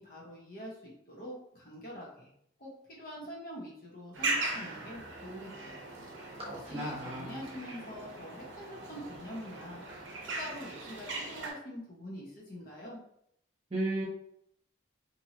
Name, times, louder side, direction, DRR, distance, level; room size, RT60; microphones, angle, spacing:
voice 1, 0.0-2.3 2.6-5.8 6.4-9.8 10.2-13.0, equal, 50° left, -4 dB, 0.9 m, -45 dB
sound 1, 4.1-11.5, right 2 dB, 70° right, 0.6 m, -39 dB
voice 2, 6.4-7.4 13.7-14.1, right 1 dB, 30° right, -5 dB, 0.9 m, -35 dB
2.8 x 2.6 x 2.8 m, 0.72 s
head